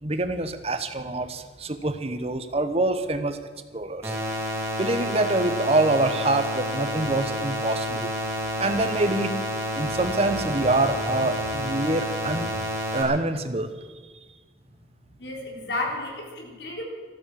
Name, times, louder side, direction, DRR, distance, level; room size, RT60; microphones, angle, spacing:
voice 1, 0.0-3.4 3.7-4.2 4.8-8.1 8.6-9.4 9.7-12.6 12.9-13.7, right 2 dB, 35° right, 10 dB, 1.0 m, -25 dB
sound 1, 4.0-13.0, equal, 15° right, 3.2 m, -29 dB
voice 2, 15.2-16.8, left 2 dB, 80° left, 0 dB, 3.7 m, -32 dB
13.5 x 13.5 x 7.5 m, 1.4 s
head